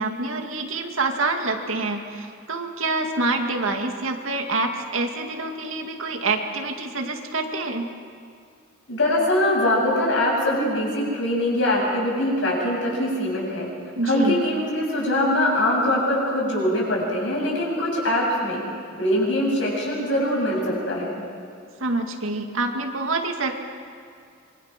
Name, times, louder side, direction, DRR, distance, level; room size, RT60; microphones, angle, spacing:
voice 1, 0.0-7.9 14.0-14.4 21.8-23.5, right 3 dB, 75° right, 4 dB, 2.2 m, -26 dB
voice 2, 8.9-13.7 14.1-18.6 19.0-21.2, left 1 dB, 60° left, -2 dB, 7.7 m, -23 dB
26.0 x 23.0 x 6.0 m, 2.3 s
head